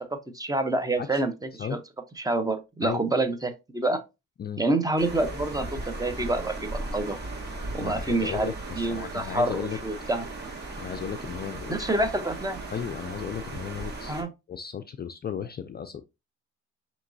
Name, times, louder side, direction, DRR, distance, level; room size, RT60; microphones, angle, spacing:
voice 1, 0.1-1.3 1.6-1.8 2.2-4.0 4.6-7.2 7.7-10.3 11.7-12.6 14.1-14.3, right 2 dB, 10° right, 0.7 m, -27 dB
sound 1, 5.0-14.2, right 2 dB, 35° right, 1.6 m, -37 dB
voice 2, 7.8-9.8 10.8-11.9 12.7-14.1 14.5-16.0, left 8 dB, 35° left, 0.4 m, -35 dB
5.8 x 3.0 x 2.6 m
cardioid pair, 90°, 30 cm